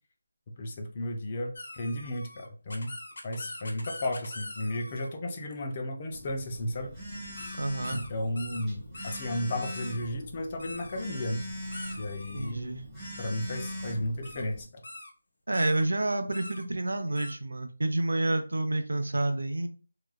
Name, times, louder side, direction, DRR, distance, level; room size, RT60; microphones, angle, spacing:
voice 1, 0.6-2.9 3.2-6.9 7.9-11.4 12.0-12.9 13.2-14.7, left 1 dB, 30° left, 4 dB, 0.5 m, -34 dB
sound 1, 1.6-5.1 7.4-7.6 7.8-8.1 8.4-8.7 8.9-9.3 9.6-10.1 10.6-11.0 11.7-12.5 13.5-13.8 14.2-14.4 14.8-15.1 15.5-15.8 16.3-16.6 17.2-17.3, left 2 dB, 70° left, 0.8 m, -43 dB
Telephone, 6.1-14.6, equal, 5° right, 0.8 m, -42 dB
voice 2, 7.6-8.0 12.3-12.8 15.5-19.7, right 2 dB, 80° right, 8 dB, 0.5 m, -29 dB
2.9 x 2.3 x 2.3 m, 0.37 s
figure-of-eight pair, 165°, 0 cm